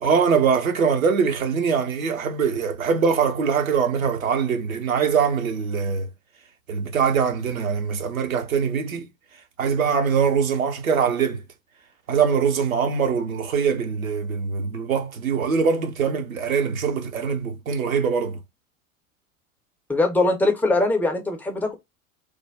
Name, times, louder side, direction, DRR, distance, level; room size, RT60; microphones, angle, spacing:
voice 1, 0.0-6.1 6.7-9.1 9.6-11.4 12.1-18.4, right 6 dB, 80° right, 0.8 m, -22 dB
voice 2, 19.9-21.7, left 2 dB, 5° left, 0.3 m, -21 dB
3.2 x 2.1 x 3.2 m
figure-of-eight pair, 80°, 41 cm